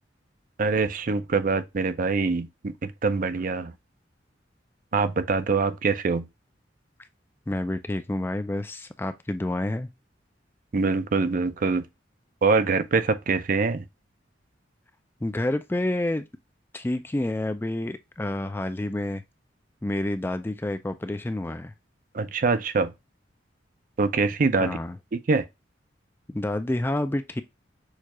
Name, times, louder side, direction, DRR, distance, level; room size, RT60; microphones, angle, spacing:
voice 1, 0.6-3.7 4.9-6.3 10.7-11.8 12.4-13.9 22.1-22.9 24.0-24.8 25.1-25.4, right 4 dB, 45° right, 0.5 m, -24 dB
voice 2, 7.5-9.9 15.2-16.3 16.7-19.2 19.8-21.7 24.6-25.0 26.3-27.4, left 1 dB, 10° left, 0.3 m, -29 dB
6.5 x 2.4 x 2.9 m
head